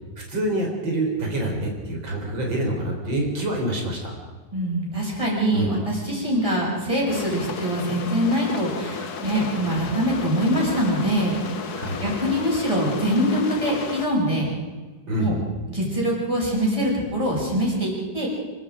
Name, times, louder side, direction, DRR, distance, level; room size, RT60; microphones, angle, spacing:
voice 1, 0.3-4.1 5.5-5.7 9.8-9.9 11.7-12.0 15.1-15.3, right 1 dB, 85° right, 0 dB, 4.6 m, -26 dB
voice 2, 4.5-11.4 12.0-14.5 15.2-15.4 15.7-18.3, equal, 15° right, -4 dB, 7.0 m, -24 dB
sound 1, 7.1-14.1, left 5 dB, 60° left, 1.8 m, -34 dB
27.0 x 23.5 x 5.1 m, 1.4 s
omnidirectional pair, 2.0 m